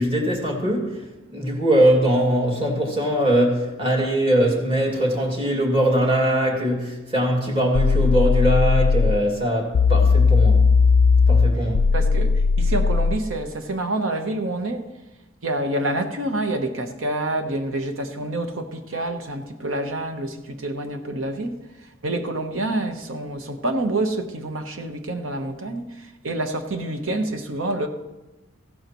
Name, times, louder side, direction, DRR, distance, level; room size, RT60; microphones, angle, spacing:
voice 1, 0.0-10.6 11.3-11.9, right 1 dB, 30° right, 2.3 m, -21 dB
sound 1, 7.7-9.2 9.7-13.2, left 4 dB, 85° left, 0.4 m, -17 dB
voice 2, 11.9-14.8 15.4-21.6 22.0-27.9, right 2 dB, 85° right, 1.1 m, -27 dB
15.0 x 12.0 x 3.1 m
head